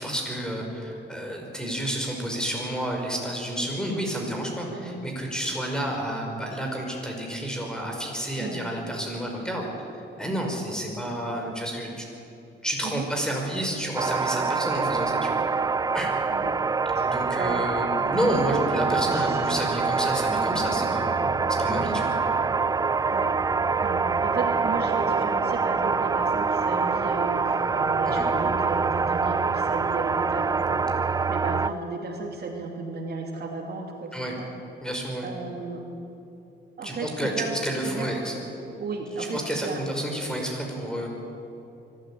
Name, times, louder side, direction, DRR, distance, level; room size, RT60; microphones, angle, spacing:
voice 1, 0.0-9.7 10.2-12.1 12.6-15.4 15.9-16.1 17.0-22.1 28.1-28.3 34.1-34.3 34.8-35.3 36.8-37.3 37.6-38.3 39.3-41.1, equal, 5° left, 1 dB, 5.4 m, -30 dB
voice 2, 4.7-5.0 8.4-8.7 10.3-10.6 12.8-13.1 16.3-16.5 16.9-17.6 19.1-19.5 23.1-23.3 23.8-30.8 31.3-34.5 35.2-35.8 36.8-37.6 37.8-38.4 38.8-39.8, right 3 dB, 55° right, 1 dB, 2.7 m, -34 dB
sound 1, 14.0-31.7, right 4 dB, 20° right, 0.4 m, -25 dB
24.0 x 13.5 x 8.9 m, 2.8 s
cardioid pair, 90°, 20 cm